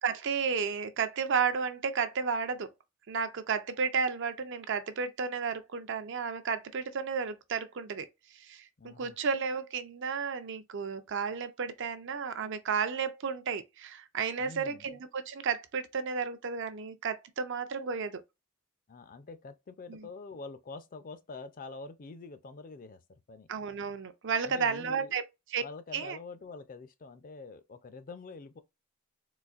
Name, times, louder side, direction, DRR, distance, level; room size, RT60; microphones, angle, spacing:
voice 1, 0.0-2.7 3.1-8.1 8.3-18.2 19.9-20.1 23.5-25.2 25.5-25.6 25.9-26.2, right 5 dB, 60° right, 0.5 m, -32 dB
voice 2, 8.8-9.2 14.4-14.9 18.9-23.5 24.4-25.2 25.6-28.6, left 3 dB, 40° left, 0.4 m, -46 dB
3.9 x 2.5 x 2.4 m
head